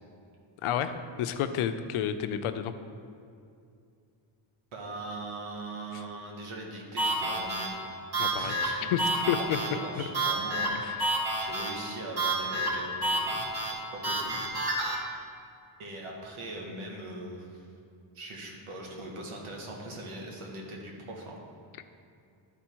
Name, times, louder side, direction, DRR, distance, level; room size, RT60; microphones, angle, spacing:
voice 1, 0.6-2.7 8.2-8.5 8.9-9.0 9.3-9.6 9.9-10.0 10.7-11.0, left 9 dB, 85° left, 10 dB, 0.6 m, -30 dB
voice 2, 4.7-7.8 8.4-9.0 9.6-14.9 15.8-17.7 18.1-21.4, right 2 dB, 85° right, -1 dB, 1.6 m, -41 dB
sound 1, 7.0-15.0, right 1 dB, 50° right, 2.0 m, -30 dB
11.0 x 4.4 x 4.5 m, 2.4 s
cardioid pair, 85°, 49 cm